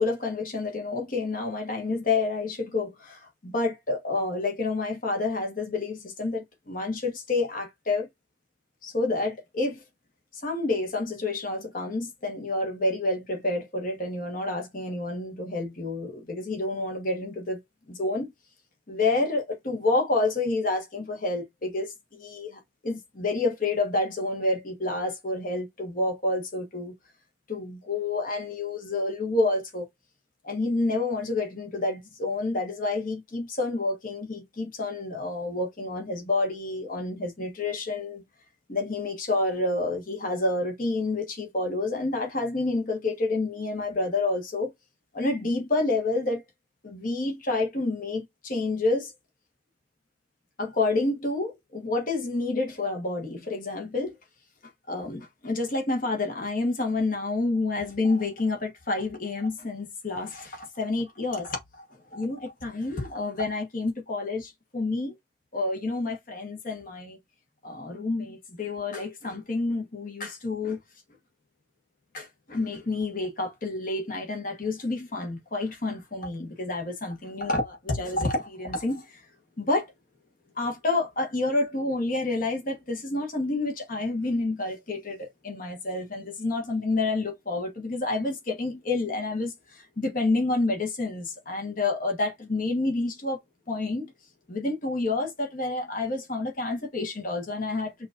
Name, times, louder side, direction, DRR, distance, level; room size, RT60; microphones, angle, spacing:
voice 1, 0.0-8.1 8.8-9.8 10.3-17.6 17.9-18.3 18.9-26.9 27.5-29.8 30.4-38.2 38.7-44.7 45.1-46.4 46.8-49.1 50.6-54.1 54.9-61.8 62.1-65.1 65.5-67.2 67.6-70.8 72.1-79.2 79.6-79.9 80.6-93.4 93.7-94.1 94.5-98.1, left 2 dB, 45° left, 1.3 m, -29 dB
5.8 x 2.6 x 2.6 m
head